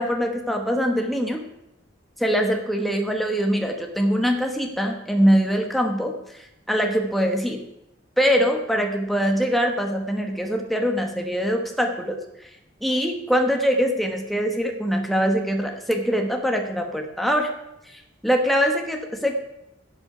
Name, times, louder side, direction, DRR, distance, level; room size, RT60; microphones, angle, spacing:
voice 1, 0.0-1.4 2.2-7.6 8.2-12.2 12.8-17.5 18.2-19.4, equal, ahead, 3 dB, 1.0 m, -23 dB
11.5 x 8.3 x 5.8 m, 0.86 s
head